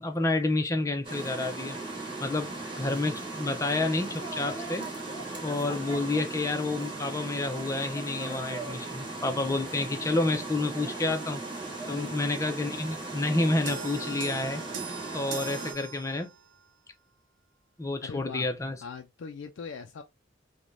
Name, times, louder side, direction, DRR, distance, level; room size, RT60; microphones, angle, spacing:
voice 1, 0.0-1.8 2.2-4.9 5.4-11.4 11.9-14.6 15.1-16.3 17.8-18.8, left 2 dB, 15° left, 0.5 m, -29 dB
sound 1, 1.0-15.7, right 2 dB, 25° right, 1.1 m, -37 dB
sound 2, 13.7-16.5, right 6 dB, 80° right, 0.6 m, -40 dB
voice 2, 18.0-18.5 18.8-20.0, left 5 dB, 80° left, 0.4 m, -40 dB
3.2 x 2.2 x 2.5 m
head